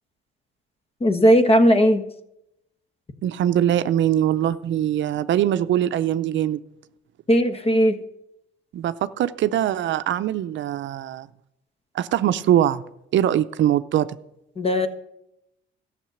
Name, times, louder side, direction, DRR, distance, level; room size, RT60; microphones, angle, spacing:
voice 1, 1.0-2.0 7.3-8.0 14.6-14.9, equal, 30° left, 9 dB, 1.3 m, -17 dB
voice 2, 3.2-6.6 8.7-11.3 11.9-12.8 13.1-14.2, right 11 dB, 70° right, 13 dB, 0.6 m, -22 dB
13.5 x 6.6 x 7.8 m, 0.83 s
cardioid pair, 90°, 20 cm